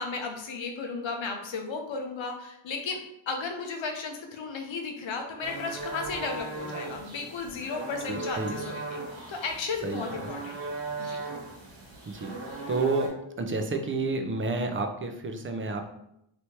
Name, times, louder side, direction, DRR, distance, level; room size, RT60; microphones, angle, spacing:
voice 1, 0.0-3.0 3.3-9.0 9.3-10.6 11.0-11.2, left 4 dB, 65° left, 3 dB, 0.8 m, -34 dB
sound 1, 5.4-13.1, right 3 dB, 65° right, 1.3 m, -38 dB
voice 2, 8.1-8.6 9.8-10.0 12.1-12.3 12.7-13.1 13.4-15.9, right 3 dB, 25° right, 5 dB, 0.5 m, -30 dB
3.2 x 3.1 x 2.8 m, 0.80 s
cardioid pair, 55°, 49 cm